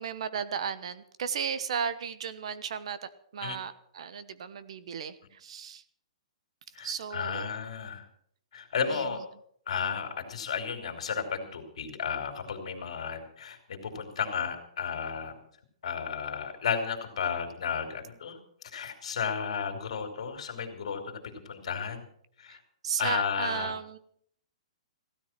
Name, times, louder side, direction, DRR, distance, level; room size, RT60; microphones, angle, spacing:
voice 1, 0.0-5.8 6.8-7.6 8.9-9.1 22.5-22.6 22.8-24.0, right 7 dB, 55° right, 15 dB, 1.2 m, -35 dB
voice 2, 6.8-8.1 8.5-9.3 9.7-15.4 15.8-18.4 18.7-22.0 22.4-22.6 23.0-23.7, left 6 dB, 65° left, 6 dB, 3.4 m, -33 dB
16.0 x 13.0 x 6.0 m, 0.64 s
hypercardioid pair, 170°, 4 cm